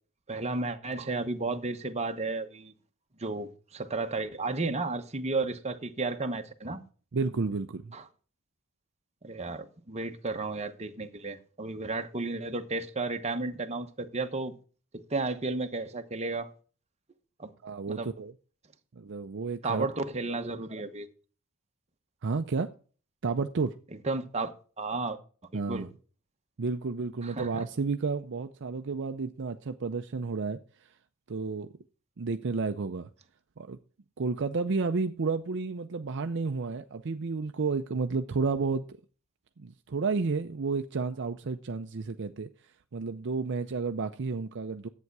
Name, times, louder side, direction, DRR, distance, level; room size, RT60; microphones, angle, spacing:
voice 1, 0.3-2.7 3.2-6.8 7.9-8.0 9.2-14.5 14.9-16.5 17.4-17.5 17.9-18.1 19.6-21.1 24.0-24.5 24.8-25.2 25.5-25.9 27.2-27.6, right 3 dB, 30° right, 1.0 m, -33 dB
voice 2, 7.1-7.9 17.6-18.3 19.0-19.9 22.2-22.7 23.2-23.7 25.5-25.9 26.6-30.6 31.3-31.7 32.2-33.1 33.6-33.8 34.2-39.0 39.6-42.5 42.9-44.9, right 4 dB, 55° right, 0.6 m, -31 dB
11.0 x 8.4 x 4.7 m
head